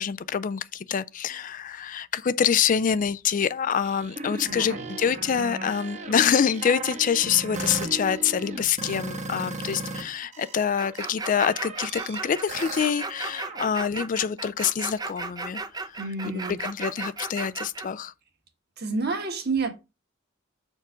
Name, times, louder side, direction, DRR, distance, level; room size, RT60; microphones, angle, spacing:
voice 1, 0.0-16.0 16.2-18.1, left 7 dB, 40° left, 0.4 m, -26 dB
sound 1, 3.8-10.0 10.3-13.6, right 3 dB, 35° right, 1.1 m, -36 dB
voice 2, 4.5-4.9 16.0-16.6 18.8-19.7, right 3 dB, 55° right, 1.7 m, -29 dB
sound 2, 10.8-17.9, right 3 dB, 20° right, 0.6 m, -35 dB
7.2 x 4.4 x 5.0 m
head